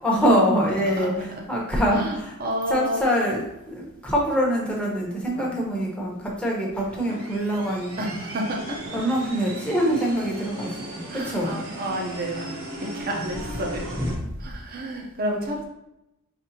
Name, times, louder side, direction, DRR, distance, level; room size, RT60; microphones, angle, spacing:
voice 1, 0.0-2.3 2.7-8.1 8.9-11.6 14.0-14.1, equal, 5° left, -3 dB, 1.0 m, -24 dB
voice 2, 1.0-1.4 1.9-3.0 5.3-5.5 8.0-9.0 11.1-12.5 12.8-13.9 14.4-15.6, right 1 dB, 45° right, 1 dB, 0.7 m, -30 dB
sound 1, 6.8-14.2, right 1 dB, 70° right, 1.0 m, -37 dB
5.3 x 3.3 x 2.8 m, 0.89 s
head